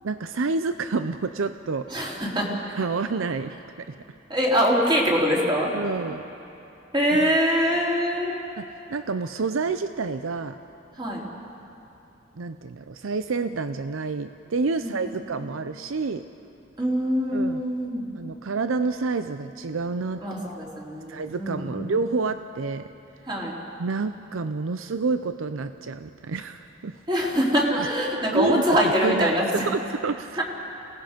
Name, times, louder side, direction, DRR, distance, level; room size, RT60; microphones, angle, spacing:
voice 1, 0.0-1.9 2.7-4.0 5.7-6.2 7.1-7.3 8.6-10.6 12.4-16.2 17.3-17.6 18.2-20.2 21.1-22.9 23.8-27.0 28.3-30.4, right 4 dB, 90° right, 10 dB, 0.6 m, -28 dB
voice 2, 1.9-2.5 4.3-5.7 6.9-8.3 11.0-11.3 14.8-15.0 15.4-15.5 16.8-18.0 20.2-21.9 23.3-23.5 27.1-29.6 30.4-30.5, equal, 25° right, -3 dB, 3.3 m, -23 dB
28.5 x 18.5 x 5.2 m, 2.9 s
head